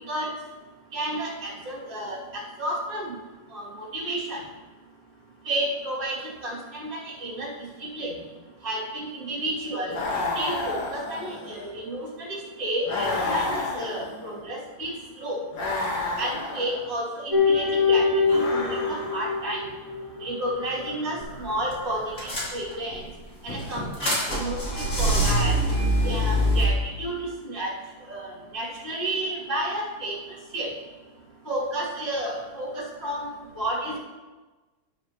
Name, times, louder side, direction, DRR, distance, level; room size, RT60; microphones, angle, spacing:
voice 1, 0.9-3.1 3.5-4.4 5.4-8.2 8.6-10.0 10.3-15.4 16.2-19.6 20.2-23.1 23.4-25.6 26.0-27.7 28.1-30.2 30.5-30.7 31.4-34.0, right 1 dB, 40° right, -5 dB, 3.2 m, -31 dB
sound 1, 9.9-11.7 12.9-14.4 15.5-16.9 18.2-19.4, left 2 dB, 65° left, 2.2 m, -30 dB
sound 2, 17.3-20.2 20.5-21.1, left 5 dB, 15° left, 2.3 m, -24 dB
sound 3, 21.2-21.4 21.7-21.8 22.2-23.0 23.5-26.6, equal, 40° left, 3.5 m, -24 dB
12.5 x 10.0 x 3.1 m, 1.2 s
omnidirectional pair, 2.2 m